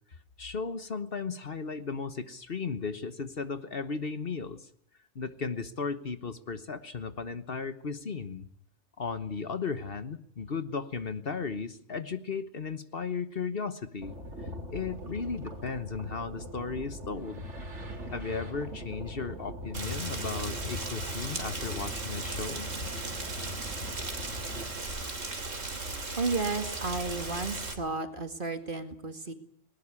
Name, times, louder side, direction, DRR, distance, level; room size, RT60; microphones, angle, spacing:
voice 1, 0.4-4.7 5.1-8.5 9.0-17.5 18.1-22.7, left 5 dB, 50° left, 11 dB, 1.3 m, -35 dB
sound 1, 14.0-24.6, equal, 70° right, 4.2 m, -41 dB
Rain, 19.7-27.7, right 2 dB, 90° right, 3.3 m, -37 dB
voice 2, 26.2-29.3, right 3 dB, 40° right, 7 dB, 2.3 m, -33 dB
20.0 x 19.0 x 9.7 m, 0.65 s
omnidirectional pair, 1.3 m